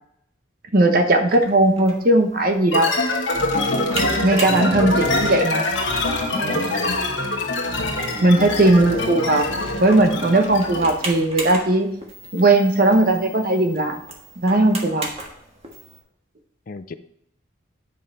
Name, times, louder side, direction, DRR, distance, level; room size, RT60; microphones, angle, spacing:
voice 1, 0.7-2.9 4.2-5.6 6.3-6.6 8.2-9.5 9.8-11.9 12.3-14.0 14.4-15.1, right 2 dB, 45° right, 5 dB, 1.0 m, -18 dB
sound 1, 1.3-16.0, right 2 dB, 30° right, 1.4 m, -38 dB
sound 2, 2.7-11.0, left 2 dB, 70° left, 1.5 m, -24 dB
voice 2, 4.5-4.8 6.7-7.0 8.9-9.2 16.7-16.9, left 4 dB, 45° left, 12 dB, 0.4 m, -33 dB
9.6 x 5.4 x 4.2 m, 0.75 s
head